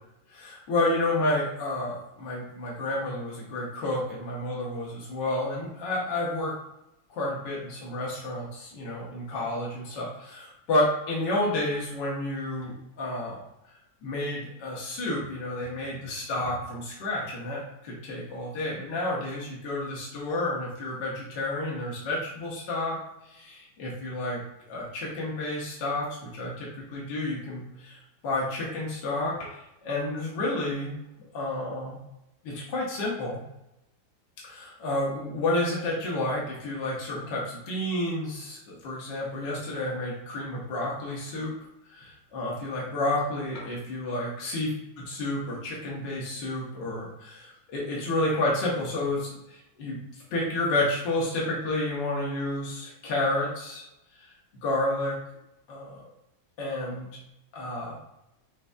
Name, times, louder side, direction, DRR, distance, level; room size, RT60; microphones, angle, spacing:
voice 1, 0.3-6.5 7.1-13.4 14.0-23.0 23.3-24.4 24.7-30.9 31.3-32.0 32.4-33.4 34.4-41.5 41.9-44.7 45.0-50.0 50.3-53.8 54.2-54.3 54.6-55.2 55.7-56.1 56.6-57.1 57.5-58.0, left 1 dB, 65° left, -4 dB, 1.6 m, -30 dB
6.7 x 2.7 x 2.3 m, 0.88 s
omnidirectional pair, 2.1 m